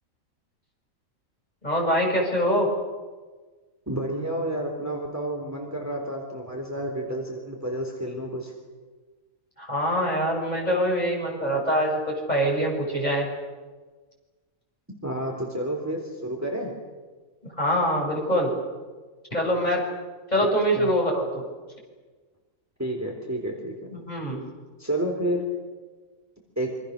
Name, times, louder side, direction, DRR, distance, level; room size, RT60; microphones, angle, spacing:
voice 1, 1.6-2.7 9.6-13.3 17.6-18.5 19.3-19.8 20.3-21.2 23.9-24.4, equal, 30° left, -1 dB, 7.0 m, -24 dB
voice 2, 3.9-8.5 15.0-16.7 20.4-20.5 20.8-20.9 22.8-23.9 24.8-25.4 26.6-26.7, right 1 dB, 10° right, 1 dB, 3.7 m, -30 dB
27.5 x 25.5 x 6.7 m, 1.4 s
omnidirectional pair, 1.5 m